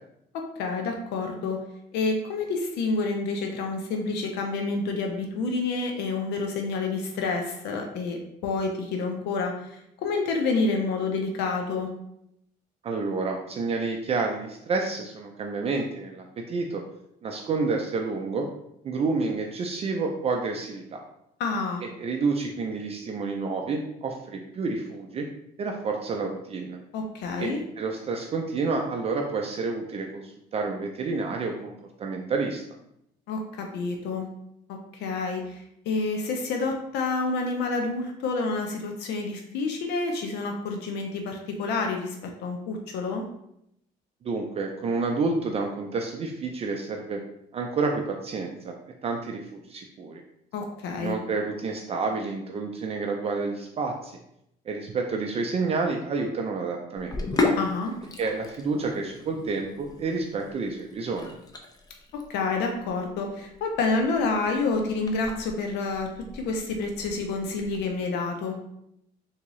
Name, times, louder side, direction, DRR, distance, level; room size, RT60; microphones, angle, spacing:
voice 1, 0.6-1.6 1.9-11.9 21.4-21.8 26.9-27.6 33.3-34.3 34.7-43.2 50.5-51.2 57.6-57.9 62.1-68.6, left 3 dB, 80° left, 3 dB, 0.5 m, -28 dB
voice 2, 12.8-16.8 17.2-18.5 18.8-21.0 22.0-25.3 25.6-26.8 27.4-27.5 27.8-32.6 44.2-47.2 47.5-48.7 49.0-50.2 51.0-54.2 54.7-57.2 58.2-61.3, right 4 dB, 35° right, 2 dB, 0.4 m, -29 dB
Sink (filling or washing), 57.0-67.8, left 3 dB, 20° left, 0.5 m, -35 dB
3.5 x 2.8 x 3.0 m, 0.78 s
cardioid pair, 110°, 17 cm